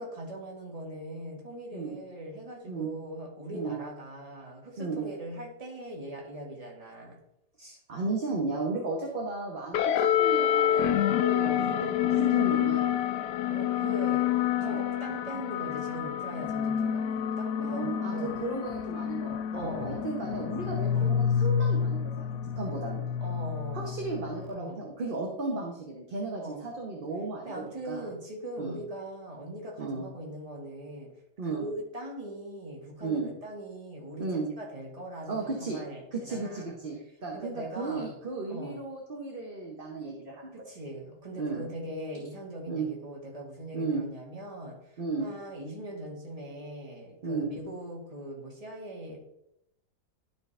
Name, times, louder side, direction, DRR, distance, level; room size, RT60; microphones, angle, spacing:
voice 1, 0.0-7.2 11.3-11.7 13.5-14.3 14.6-18.4 19.5-20.2 20.8-21.2 23.2-24.1 24.5-24.9 26.3-26.7 27.4-31.1 31.4-38.1 38.5-38.9 40.5-49.2, right 1 dB, 20° right, -1 dB, 1.6 m, -41 dB
voice 2, 7.6-12.8 14.6-14.8 17.6-22.3 22.6-23.1 23.7-28.1 28.6-28.8 29.8-30.1 31.4-31.6 33.0-33.3 34.2-34.5 35.3-35.8 36.1-40.5 41.4-41.6 42.7-42.9 43.7-44.0 45.0-45.3 47.2-47.5, right 3 dB, 40° right, 0 dB, 1.0 m, -34 dB
sound 1, 9.7-24.5, left 9 dB, 75° left, 1.1 m, -28 dB
11.5 x 5.0 x 3.3 m, 0.80 s
omnidirectional pair, 1.8 m